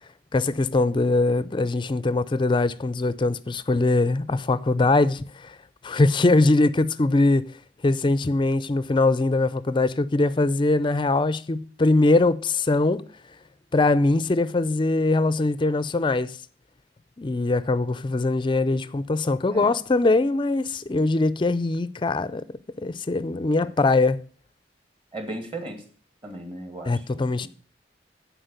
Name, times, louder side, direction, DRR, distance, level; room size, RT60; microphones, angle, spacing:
voice 1, 0.3-5.5 5.8-7.4 7.8-13.0 13.7-16.4 17.2-22.4 22.8-24.2 26.8-27.5, left 2 dB, 25° left, 0.4 m, -22 dB
voice 2, 25.1-25.8 26.2-27.5, right 1 dB, 30° right, 2.0 m, -36 dB
10.0 x 4.7 x 8.0 m
head